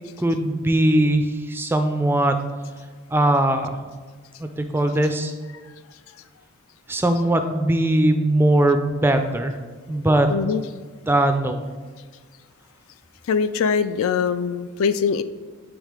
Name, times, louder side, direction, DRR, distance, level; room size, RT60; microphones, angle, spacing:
voice 1, 0.2-2.4 3.1-3.8 4.4-5.3 6.9-9.6 9.9-10.3 11.1-11.6, right 1 dB, 10° right, 6 dB, 0.3 m, -20 dB
voice 2, 10.3-10.6 13.3-15.2, left 6 dB, 65° left, 13 dB, 0.3 m, -22 dB
8.4 x 3.6 x 4.7 m, 1.5 s
head